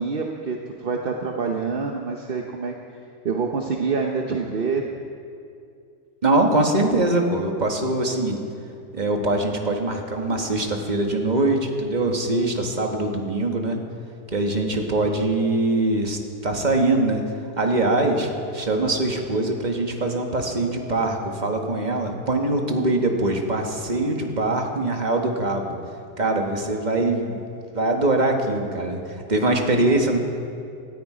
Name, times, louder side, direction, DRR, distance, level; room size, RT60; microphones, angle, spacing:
voice 1, 0.0-2.7 3.2-4.8, right 5 dB, 45° right, 2 dB, 0.8 m, -26 dB
voice 2, 6.2-8.4 8.9-13.8 14.3-17.2 17.6-25.8 26.2-27.4 27.7-30.2, right 2 dB, 25° right, 2 dB, 1.5 m, -23 dB
18.5 x 13.5 x 5.0 m, 2.4 s
omnidirectional pair, 1.8 m